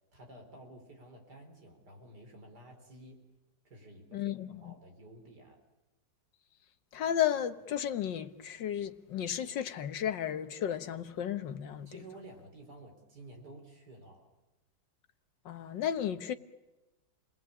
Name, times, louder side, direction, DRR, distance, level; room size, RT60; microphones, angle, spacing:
voice 1, 0.1-3.3 3.6-4.3 4.6-5.6 11.9-14.3, right 1 dB, 65° right, 4.9 m, -52 dB
voice 2, 4.1-4.8 6.9-11.9 15.5-16.3, left 10 dB, 80° left, 1.8 m, -33 dB
29.5 x 20.5 x 8.6 m
omnidirectional pair, 1.9 m